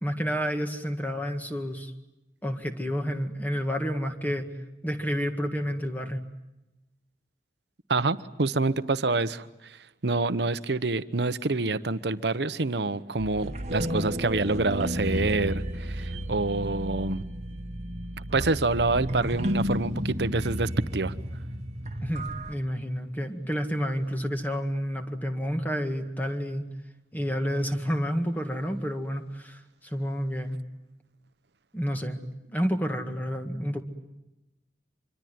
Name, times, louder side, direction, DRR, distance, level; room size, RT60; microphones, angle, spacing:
voice 1, 0.0-1.9 2.4-4.5 4.8-6.2 22.0-26.6 27.1-30.6 31.7-32.2 32.5-33.8, equal, 10° left, 5 dB, 1.9 m, -30 dB
voice 2, 7.9-9.8 10.0-17.2 18.3-21.1, right 3 dB, 75° right, 13 dB, 0.9 m, -27 dB
sound 1, 13.2-22.5, equal, 40° right, 1.4 m, -32 dB
25.5 x 24.0 x 9.4 m, 0.97 s
head